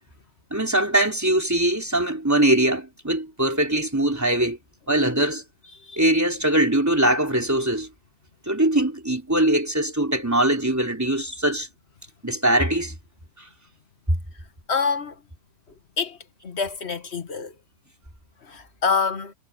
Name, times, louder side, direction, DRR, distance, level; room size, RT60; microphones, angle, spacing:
voice 1, 0.5-4.6 4.9-5.4 6.0-7.9 8.5-11.7 12.2-13.0, right 1 dB, 10° right, 3.8 m, -22 dB
voice 2, 14.7-15.2 16.0-16.2 16.4-17.5 18.4-19.3, left 5 dB, 50° left, 1.8 m, -26 dB
omnidirectional pair, 1.4 m